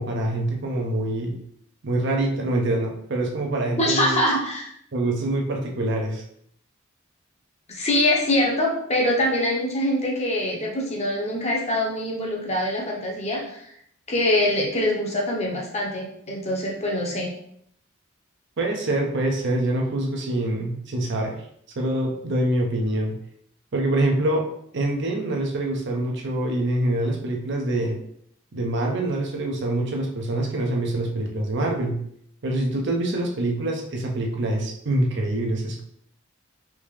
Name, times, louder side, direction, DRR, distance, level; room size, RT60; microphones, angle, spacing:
voice 1, 0.0-1.4 1.8-4.2 4.9-6.2 18.6-21.4 21.8-23.2 23.7-28.0 28.5-32.0 32.4-35.8, right 1 dB, 60° right, 1 dB, 0.6 m, -25 dB
voice 2, 3.8-4.7 7.7-13.6 14.1-17.3, left 1 dB, 35° left, -2 dB, 0.8 m, -24 dB
3.5 x 2.8 x 3.2 m, 0.69 s
head